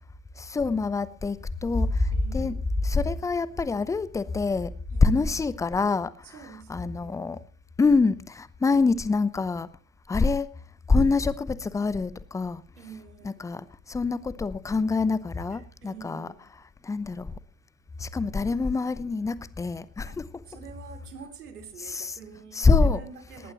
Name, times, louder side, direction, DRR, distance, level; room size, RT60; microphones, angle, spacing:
voice 1, 0.4-2.6 2.8-4.7 5.0-6.4 6.7-7.4 7.8-9.7 10.1-10.5 10.9-12.6 13.2-16.3 16.8-17.3 18.0-20.3 21.8-22.2 22.5-23.0, left 4 dB, 5° left, 0.7 m, -25 dB
voice 2, 2.1-2.6 4.9-5.3 6.3-7.2 12.8-13.4 15.8-16.4 20.1-20.2 20.5-23.5, right 6 dB, 70° right, 3.1 m, -46 dB
19.0 x 18.5 x 3.0 m
figure-of-eight pair, 85°, 47 cm